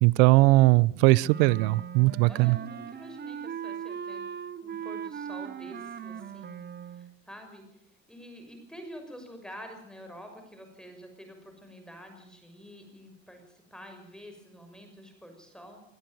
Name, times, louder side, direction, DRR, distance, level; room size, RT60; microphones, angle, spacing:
voice 1, 0.0-2.6, right 20 dB, 70° right, 22 dB, 0.7 m, -20 dB
Wind instrument woodwind instrument, 1.2-7.1, right 8 dB, 30° right, 1.0 m, -39 dB
voice 2, 2.3-7.7 8.1-15.8, equal, ahead, 5 dB, 6.3 m, -48 dB
22.5 x 12.5 x 9.3 m, 0.77 s
supercardioid pair, 105°, 35 cm